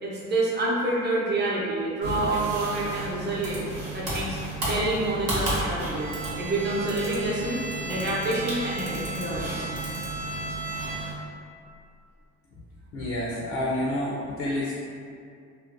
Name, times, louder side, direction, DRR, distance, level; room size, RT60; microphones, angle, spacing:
voice 1, 0.0-3.6 3.9-6.1 6.4-7.6 7.8-9.7, right 2 dB, 35° right, -6 dB, 0.6 m, -28 dB
sound 1, 2.0-11.1, right 2 dB, 85° right, 0.9 m, -33 dB
Bowed string instrument, 5.9-11.4, right 2 dB, 5° left, 0.4 m, -37 dB
voice 2, 12.9-14.7, left 1 dB, 70° left, -5 dB, 0.5 m, -29 dB
2.6 x 2.1 x 2.4 m, 2.3 s
cardioid pair, 90°, 30 cm